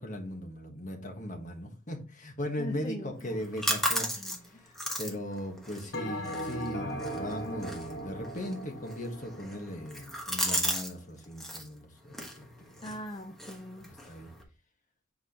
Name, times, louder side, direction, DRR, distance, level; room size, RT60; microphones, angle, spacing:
voice 1, 0.0-4.1 4.4-13.0 14.1-14.3, equal, 40° left, 3 dB, 1.5 m, -38 dB
voice 2, 2.6-3.4 4.1-4.6 12.8-13.9, left 1 dB, 20° left, 5 dB, 0.5 m, -41 dB
sound 1, 3.2-10.9 11.2-11.7 12.1-14.4, equal, ahead, 1.2 m, -36 dB
Bell, 5.9-10.5, equal, 55° left, 1.4 m, -39 dB
7.8 x 4.7 x 2.9 m, 0.32 s
head